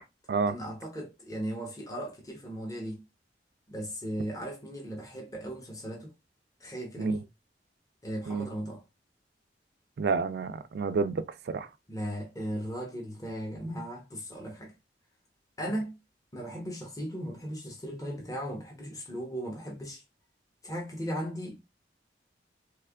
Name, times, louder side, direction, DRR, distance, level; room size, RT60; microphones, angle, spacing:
voice 1, 0.5-3.1 3.7-6.1 6.6-7.2 8.0-8.8 11.9-14.7 15.6-16.0 16.3-20.0 20.6-21.6, equal, 20° left, 0.9 m, -37 dB
voice 2, 10.0-11.7, right 4 dB, 65° right, 0.4 m, -29 dB
3.4 x 3.3 x 2.3 m
head